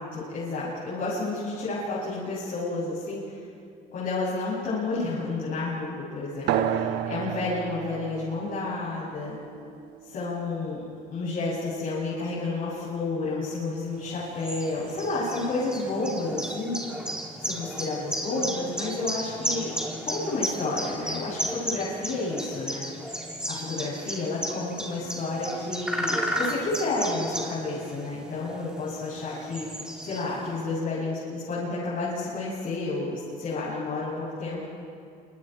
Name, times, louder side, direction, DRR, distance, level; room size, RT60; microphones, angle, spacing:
voice 1, 0.0-3.4 3.9-9.4 10.1-10.8 11.1-17.1 17.4-19.7 20.1-23.2 23.5-29.7 30.0-34.7, left 3 dB, 55° left, -8 dB, 7.7 m, -31 dB
sound 1, 6.5-11.5, right 9 dB, 85° right, 1.3 m, -32 dB
sound 2, 14.0-30.6, equal, 5° right, 3.6 m, -34 dB
28.5 x 26.5 x 4.7 m, 2.4 s
cardioid pair, 110°, 17 cm